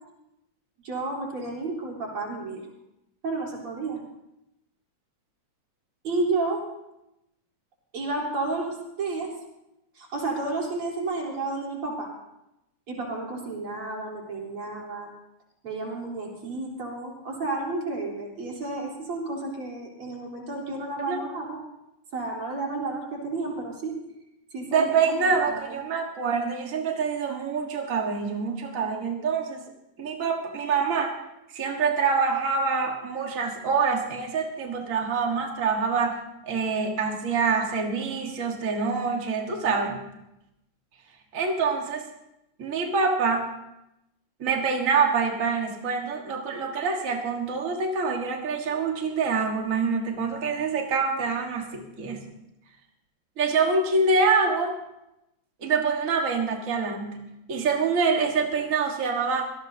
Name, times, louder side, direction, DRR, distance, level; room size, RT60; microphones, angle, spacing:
voice 1, 0.8-2.6 3.2-4.0 6.0-6.6 7.9-9.3 10.0-12.1 12.9-15.1 15.6-21.6 22.1-24.0 24.5-25.8, right 3 dB, 35° right, -2 dB, 4.3 m, -31 dB
voice 2, 24.7-29.6 30.0-31.1 31.5-36.2 36.5-40.0 41.3-42.1 42.6-43.5 44.4-52.2 53.4-54.7 55.6-57.2 57.5-59.5, right 4 dB, 90° right, 1 dB, 0.7 m, -25 dB
25.5 x 18.0 x 2.8 m, 0.87 s
omnidirectional pair, 4.2 m